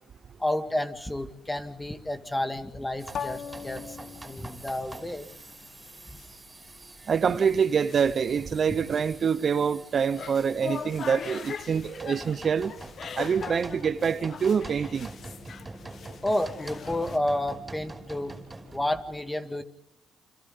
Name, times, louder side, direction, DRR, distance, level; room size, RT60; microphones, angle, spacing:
voice 1, 0.4-4.0 4.2-5.3 16.2-18.3 18.7-19.6, left 1 dB, 10° left, 2.1 m, -30 dB
sound 1, 1.3-17.2, left 7 dB, 55° left, 1.2 m, -42 dB
sound 2, 3.0-18.8, right 2 dB, 20° right, 5.5 m, -46 dB
voice 2, 7.1-12.7 13.1-15.1, right 6 dB, 50° right, 0.9 m, -25 dB
29.5 x 27.0 x 3.8 m
cardioid pair, 90°, 0 cm